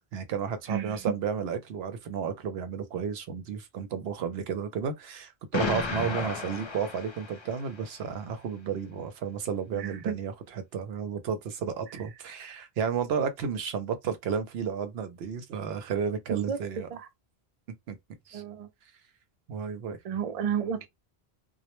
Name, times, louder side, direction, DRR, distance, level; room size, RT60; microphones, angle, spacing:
voice 1, 0.1-16.9 17.9-18.0 18.3-18.4 19.5-20.0, right 7 dB, 75° right, 0.8 m, -32 dB
voice 2, 0.7-1.0 9.7-10.1 16.3-16.6 16.9-17.1 18.3-18.7 20.0-20.9, right 7 dB, 55° right, 0.4 m, -32 dB
Explosion, 5.5-7.7, left 3 dB, 40° left, 0.4 m, -33 dB
2.1 x 2.0 x 2.9 m
omnidirectional pair, 1.1 m